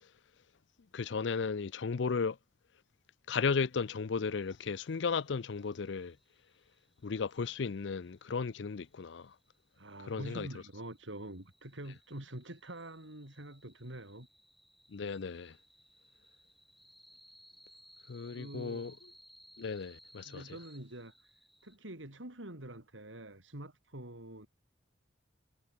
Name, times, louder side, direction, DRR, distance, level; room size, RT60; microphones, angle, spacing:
voice 1, 0.9-2.4 3.3-6.2 7.0-9.3 10.1-10.5 14.9-15.6 18.1-18.9 19.6-20.4, left 5 dB, 70° left, 0.5 m, -35 dB
sound 1, 4.3-21.8, equal, ahead, 4.4 m, -63 dB
voice 2, 9.8-14.3 18.3-19.0 20.2-21.3 21.6-24.5, right 1 dB, 85° right, 4.5 m, -46 dB
head